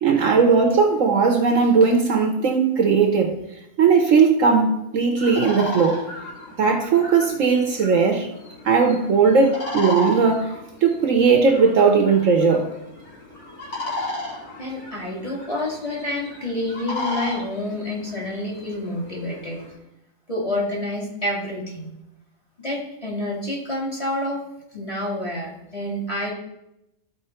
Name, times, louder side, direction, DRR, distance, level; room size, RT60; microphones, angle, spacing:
voice 1, 0.0-3.3 3.8-6.1 6.6-8.3 8.6-10.5 10.8-12.7, right 5 dB, 60° right, 3 dB, 1.2 m, -18 dB
sound 1, 5.2-19.7, left 2 dB, 70° left, 3.1 m, -35 dB
voice 2, 14.6-19.6 20.3-21.9 22.6-24.4 24.7-26.3, left 1 dB, 25° left, -3 dB, 2.0 m, -28 dB
13.0 x 4.4 x 4.3 m, 0.85 s
omnidirectional pair, 1.6 m